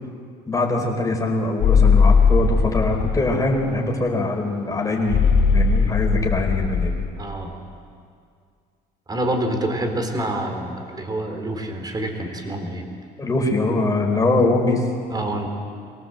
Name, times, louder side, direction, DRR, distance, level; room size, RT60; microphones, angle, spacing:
voice 1, 0.5-5.2 5.5-6.9 13.2-14.8, left 2 dB, 20° left, 0 dB, 4.3 m, -22 dB
sound 1, 1.6-3.4 5.1-7.0, left 5 dB, 85° left, 1.6 m, -18 dB
voice 2, 7.2-7.5 9.1-12.9 15.1-15.5, right 1 dB, 25° right, 5 dB, 3.5 m, -27 dB
24.0 x 17.5 x 7.9 m, 2.2 s
cardioid pair, 110°, 17 cm